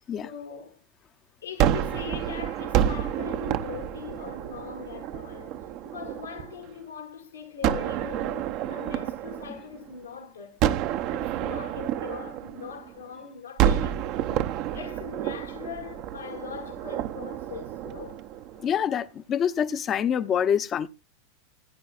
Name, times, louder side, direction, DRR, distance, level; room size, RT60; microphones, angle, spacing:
voice 1, 0.2-0.8 1.4-18.2, left 7 dB, 85° left, 2.3 m, -41 dB
Gunshot gunfire, 1.6-6.7 7.6-10.0 10.6-13.1 13.6-18.8, right 11 dB, 50° right, 0.7 m, -29 dB
voice 2, 18.6-20.9, left 8 dB, 35° left, 0.7 m, -26 dB
16.5 x 9.6 x 2.4 m
hypercardioid pair, 95°, 0 cm